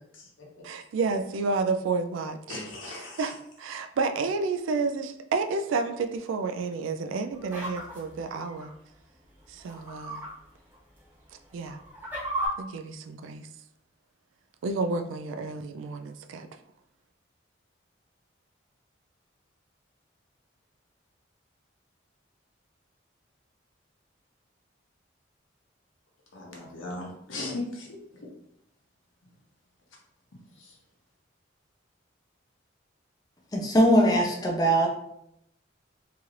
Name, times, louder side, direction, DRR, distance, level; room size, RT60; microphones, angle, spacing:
voice 1, 0.6-8.7 9.5-10.2 11.5-11.8 12.6-13.5 14.6-16.5, right 4 dB, 80° right, 7 dB, 0.3 m, -30 dB
voice 2, 2.5-3.3 26.3-27.9, left 2 dB, 90° left, -1 dB, 0.8 m, -37 dB
sound 1, 7.3-8.7 9.6-10.3 10.7-10.8 11.5-12.5, right 1 dB, 10° right, 0.9 m, -35 dB
voice 3, 33.5-34.9, equal, 20° left, 0 dB, 0.4 m, -21 dB
2.8 x 2.4 x 3.1 m, 0.78 s
head